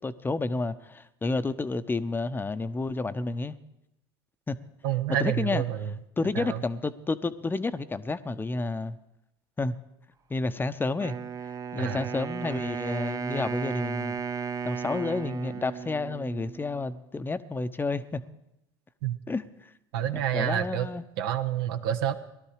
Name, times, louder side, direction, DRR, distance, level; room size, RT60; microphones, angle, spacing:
voice 1, 0.0-3.5 4.5-4.6 5.1-5.6 6.2-9.0 9.6-9.8 10.3-11.2 11.7-14.2 14.6-18.2 19.3-19.7 20.1-21.1, left 3 dB, 15° left, 11 dB, 0.8 m, -30 dB
voice 2, 4.8-5.9 6.3-6.6 11.8-12.1 19.0-19.2 19.9-20.9 21.2-22.1, right 10 dB, 75° right, 9 dB, 1.0 m, -28 dB
Wind instrument woodwind instrument, 11.0-17.0, right 6 dB, 25° right, 0.7 m, -35 dB
18.0 x 12.0 x 4.9 m, 0.88 s
hypercardioid pair, 85°, 13 cm